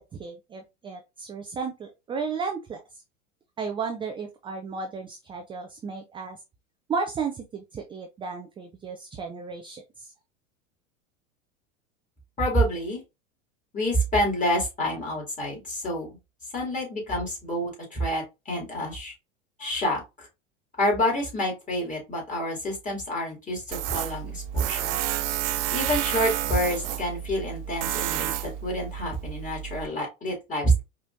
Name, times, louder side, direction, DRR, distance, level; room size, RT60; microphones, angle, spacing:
voice 1, 0.0-2.8 3.6-6.4 6.9-10.1, right 5 dB, 15° right, 4 dB, 0.4 m, -34 dB
voice 2, 12.4-13.0 13.7-16.1 16.5-19.1 19.6-20.3 20.8-25.0 25.7-30.8, equal, 20° left, -2 dB, 2.7 m, -28 dB
Tools, 23.7-29.9, right 12 dB, 65° right, 0.5 m, -30 dB
4.7 x 3.0 x 2.6 m, 0.25 s
hypercardioid pair, 90°, 39 cm